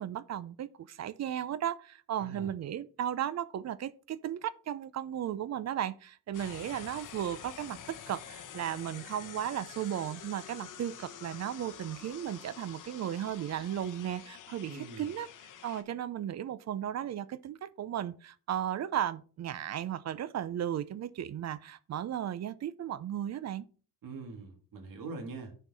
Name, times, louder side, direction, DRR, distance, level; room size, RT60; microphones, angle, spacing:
voice 1, 0.0-15.3 15.6-23.7, right 10 dB, 50° right, 0.6 m, -35 dB
voice 2, 2.2-2.5 14.6-15.1 24.0-25.6, right 3 dB, 70° right, 1.9 m, -43 dB
sound 1, 6.3-15.8, left 9 dB, 60° left, 1.0 m, -48 dB
9.8 x 4.5 x 4.1 m
cardioid pair, 130°, 34 cm